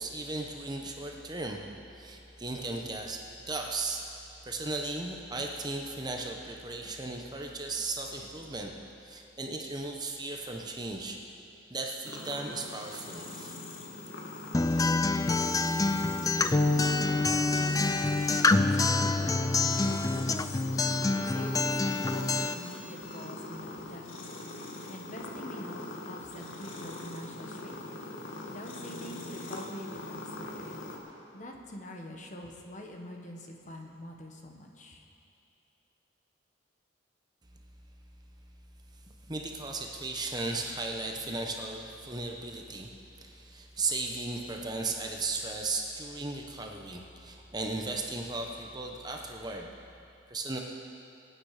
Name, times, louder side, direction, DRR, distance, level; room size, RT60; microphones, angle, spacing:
voice 1, 0.0-1.6 1.9-4.2 4.5-8.7 9.0-11.2 11.7-13.6 39.3-49.7 50.3-50.6, right 3 dB, 20° right, 2 dB, 1.0 m, -36 dB
sound 1, 12.0-31.0, left 2 dB, 85° left, 1.9 m, -42 dB
Acoustic guitar, 14.5-22.5, left 3 dB, 20° left, 0.4 m, -26 dB
voice 2, 16.5-20.6 21.3-24.0 24.9-27.9 28.4-30.8 31.3-35.0, left 1 dB, 40° left, 2 dB, 1.4 m, -45 dB
24.5 x 9.1 x 5.0 m, 2.7 s
head